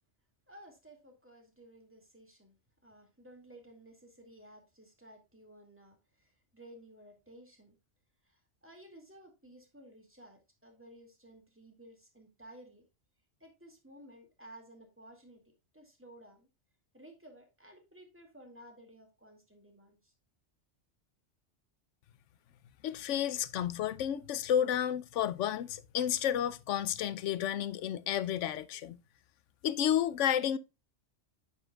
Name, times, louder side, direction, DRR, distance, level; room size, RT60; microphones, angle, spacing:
voice 1, 0.5-2.5 2.8-7.8 8.2-12.9 13.4-15.4 15.7-16.5 16.9-20.1, right 1 dB, 10° right, 2.1 m, -55 dB
voice 2, 22.8-29.0 29.6-30.6, left 10 dB, 90° left, 0.9 m, -31 dB
9.3 x 7.2 x 2.3 m
omnidirectional pair, 1.2 m